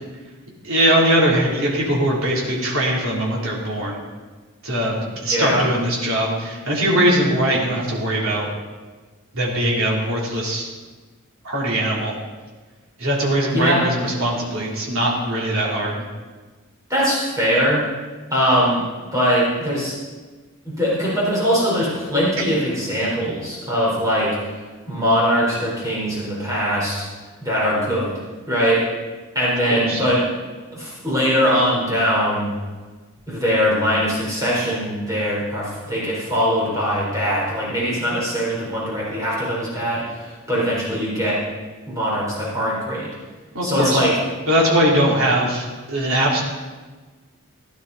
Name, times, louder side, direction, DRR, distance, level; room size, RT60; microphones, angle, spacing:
voice 1, 0.6-4.0 4.6-8.5 9.3-10.7 11.4-12.1 13.0-16.0 29.7-30.0 43.5-44.0 44.5-46.4, right 1 dB, 70° right, -4 dB, 3.5 m, -21 dB
voice 2, 5.3-5.7 13.5-13.9 16.9-17.8 18.3-18.8 19.1-19.9 20.6-24.5 24.8-27.0 27.4-28.2 28.5-28.8 29.3-30.2 30.7-32.5 33.3-41.4 41.9-43.1 43.6-44.1, equal, 15° right, -7 dB, 4.2 m, -21 dB
16.5 x 11.0 x 4.2 m, 1.3 s
head